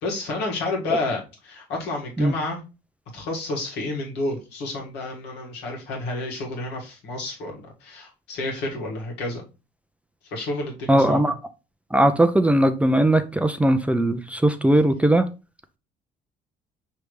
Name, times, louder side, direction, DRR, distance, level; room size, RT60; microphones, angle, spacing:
voice 1, 0.0-2.6 3.1-9.4 10.2-11.3, left 2 dB, 80° left, -1 dB, 1.7 m, -30 dB
voice 2, 10.9-11.3 11.9-15.3, right 1 dB, 10° right, 8 dB, 0.4 m, -19 dB
5.1 x 3.3 x 3.1 m, 0.31 s
cardioid pair, 110°, 17 cm